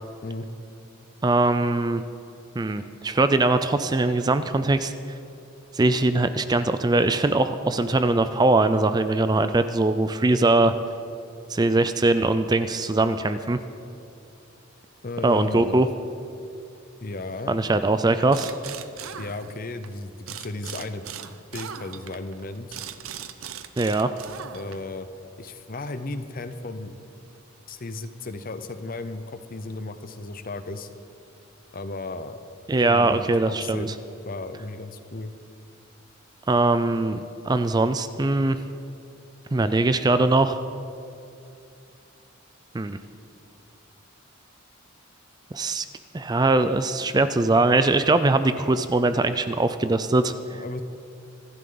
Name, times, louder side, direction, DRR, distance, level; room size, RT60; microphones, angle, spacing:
voice 1, 1.2-2.0 2.6-4.9 5.7-10.7 11.5-13.6 15.2-15.9 17.5-18.5 23.8-24.1 32.7-33.9 36.5-37.2 37.5-38.6 39.5-40.6 42.7-43.0 45.5-45.8 46.1-50.6, right 2 dB, 20° right, 11 dB, 0.4 m, -21 dB
voice 2, 15.0-15.9 17.0-17.6 19.1-21.0 21.5-22.8 24.5-25.1 25.4-26.9 27.7-30.9 31.7-32.4 32.8-33.9 34.3-35.3 50.4-50.8, left 2 dB, 45° left, 10 dB, 0.7 m, -35 dB
sound 1, 18.3-19.9 20.3-25.0, right 8 dB, 85° right, 0.7 m, -39 dB
25.5 x 11.0 x 3.9 m, 2.6 s
head